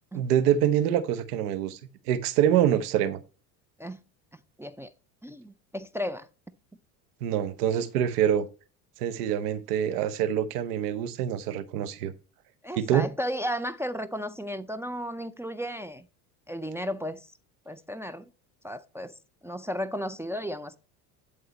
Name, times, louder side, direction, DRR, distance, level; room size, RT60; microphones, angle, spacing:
voice 1, 0.1-1.8 2.1-3.2 7.2-8.5 9.0-12.1 12.8-13.1, right 10 dB, 80° right, 1.1 m, -25 dB
voice 2, 4.6-4.9 5.2-6.3 12.6-16.1 16.5-17.3 17.7-18.3 18.6-19.1 19.4-20.8, equal, 5° right, 0.4 m, -34 dB
11.5 x 3.9 x 4.1 m
hypercardioid pair, 90°, 46 cm